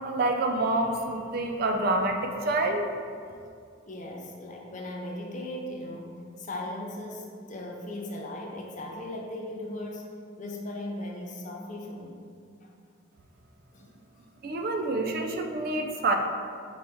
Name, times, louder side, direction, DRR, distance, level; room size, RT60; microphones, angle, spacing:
voice 1, 0.0-2.9 14.4-16.1, right 2 dB, 45° right, 4 dB, 0.4 m, -27 dB
voice 2, 3.9-10.1 10.4-12.2 13.7-13.9, left 1 dB, 40° left, 0 dB, 0.5 m, -38 dB
4.4 x 3.0 x 3.4 m, 2.3 s
head